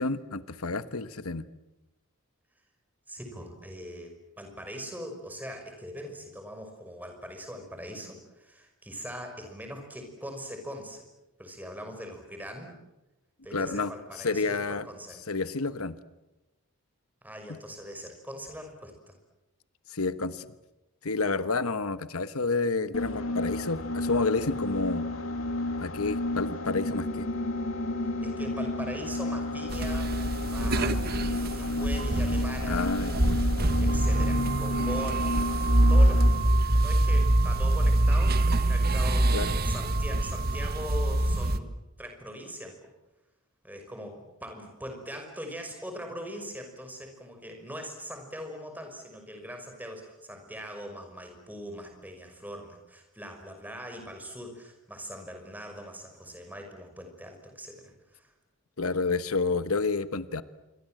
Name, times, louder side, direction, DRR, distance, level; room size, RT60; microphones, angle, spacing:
voice 1, 0.0-1.5 13.5-14.9 15.3-16.0 19.9-20.5 21.0-25.1 25.8-27.3 32.6-33.2 39.3-39.5 58.8-60.4, left 3 dB, 85° left, 13 dB, 1.2 m, -29 dB
voice 2, 3.1-11.0 11.4-12.7 13.4-15.2 17.2-19.2 28.2-30.1 30.4-31.0 31.5-32.9 33.8-35.4 35.9-36.5 36.7-39.3 39.6-41.7 42.0-42.9 43.6-58.3, equal, 10° right, 5 dB, 5.8 m, -41 dB
sound 1, 22.9-36.5, left 2 dB, 70° left, 3.1 m, -32 dB
sound 2, 29.7-41.6, right 1 dB, 45° right, 1.5 m, -25 dB
27.0 x 24.0 x 7.8 m, 0.98 s
head